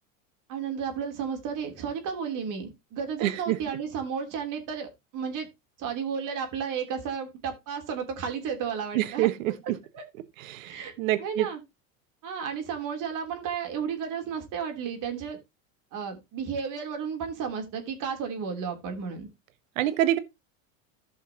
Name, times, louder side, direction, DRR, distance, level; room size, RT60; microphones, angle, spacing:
voice 1, 0.5-5.5 5.8-9.3 9.9-10.0 10.6-10.9 11.2-11.6 12.2-15.4 15.9-19.3, right 6 dB, 50° right, 3.2 m, -33 dB
voice 2, 3.2-3.6 8.9-9.8 10.4-11.5 19.8-20.2, right 14 dB, 75° right, 1.3 m, -26 dB
15.0 x 5.6 x 2.8 m
hypercardioid pair, 100°, 40 cm